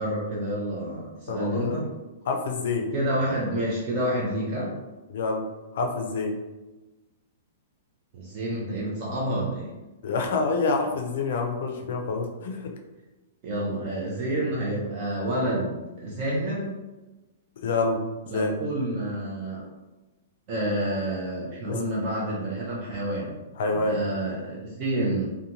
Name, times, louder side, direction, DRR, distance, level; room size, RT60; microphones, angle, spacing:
voice 1, 0.0-1.9 2.9-4.7 8.1-9.7 13.4-16.7 18.3-19.7 20.5-23.4 23.7-25.3, right 1 dB, 30° right, -4 dB, 0.4 m, -29 dB
voice 2, 1.3-1.8 2.3-2.9 5.1-5.5 5.7-6.4 10.0-12.7 17.6-18.0 18.3-18.5 21.7-21.8 23.6-24.0, left 3 dB, 55° left, 3 dB, 0.4 m, -27 dB
2.6 x 2.2 x 2.9 m, 1.1 s
hypercardioid pair, 175°, 0 cm